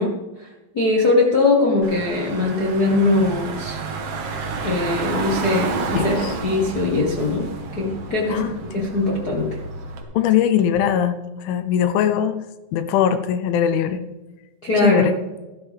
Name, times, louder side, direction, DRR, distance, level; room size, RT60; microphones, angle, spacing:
voice 1, 0.0-3.8 4.6-7.5 7.8-8.5 8.7-9.6 14.6-15.2, left 2 dB, 60° left, -2 dB, 0.9 m, -21 dB
Car / Engine, 1.8-10.0, right 4 dB, 60° right, 2.7 m, -30 dB
voice 2, 5.9-6.3 8.3-8.5 10.1-12.4 12.7-14.0 14.8-15.2, left 9 dB, 85° left, 11 dB, 2.5 m, -21 dB
14.0 x 13.0 x 3.5 m, 1.1 s
omnidirectional pair, 4.2 m